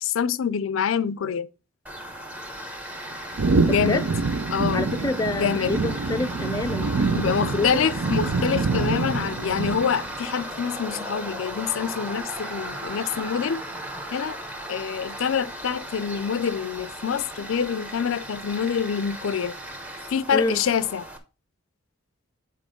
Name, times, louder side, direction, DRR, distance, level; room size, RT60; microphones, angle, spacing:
voice 1, 0.0-1.5 3.6-4.0 4.5-4.9 5.3-5.7 7.0-13.6 14.1-14.4 14.7-19.5 20.1-21.0, left 7 dB, 80° left, 0.4 m, -26 dB
Tools, 1.9-21.2, right 1 dB, 10° right, 0.9 m, -36 dB
sound 1, 3.4-10.1, right 4 dB, 75° right, 0.6 m, -26 dB
voice 2, 3.7-4.0 4.7-7.9 20.3-20.6, left 2 dB, 20° left, 0.4 m, -28 dB
8.4 x 4.3 x 5.1 m
head